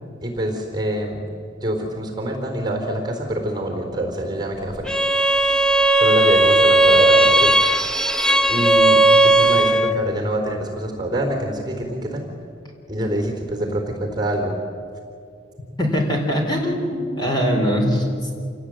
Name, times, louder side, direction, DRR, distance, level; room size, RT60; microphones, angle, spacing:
voice 1, 0.2-1.2 1.6-4.9 6.0-7.5 8.5-12.3 12.9-14.6, right 1 dB, 20° right, 3 dB, 3.9 m, -25 dB
Bowed string instrument, 4.9-10.0, right 2 dB, 5° left, 0.8 m, -16 dB
voice 2, 15.8-18.0, equal, 25° left, 1 dB, 4.4 m, -21 dB
27.5 x 18.5 x 9.1 m, 2.3 s
head